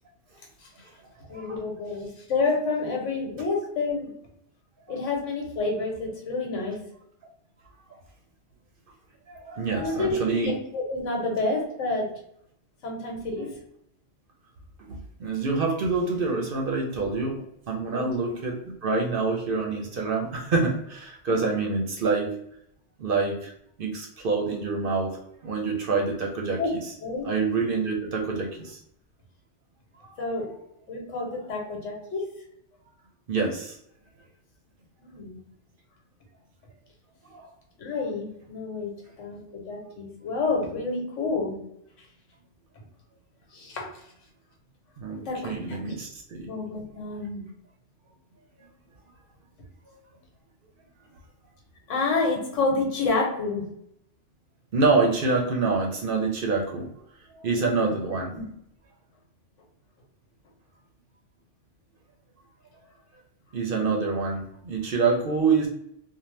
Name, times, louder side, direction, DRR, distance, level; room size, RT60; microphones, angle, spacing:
voice 1, 1.3-4.1 4.9-6.8 9.8-12.1 12.8-13.5 17.9-18.1 26.6-26.7 27.0-27.3 30.2-30.5 30.9-32.2 35.0-35.4 37.8-41.6 43.5-43.9 45.2-45.9 46.4-47.4 51.9-53.6 58.3-58.4, left 3 dB, 90° left, 0 dB, 1.2 m, -29 dB
voice 2, 9.3-10.5 14.9-22.3 23.0-23.5 23.8-25.1 25.4-26.9 27.2-28.8 30.1-30.4 33.3-33.8 37.3-37.5 45.0-46.5 54.7-56.9 57.3-58.3 63.5-65.7, right 4 dB, 60° right, 1 dB, 0.7 m, -26 dB
2.7 x 2.1 x 3.1 m, 0.73 s
omnidirectional pair, 1.2 m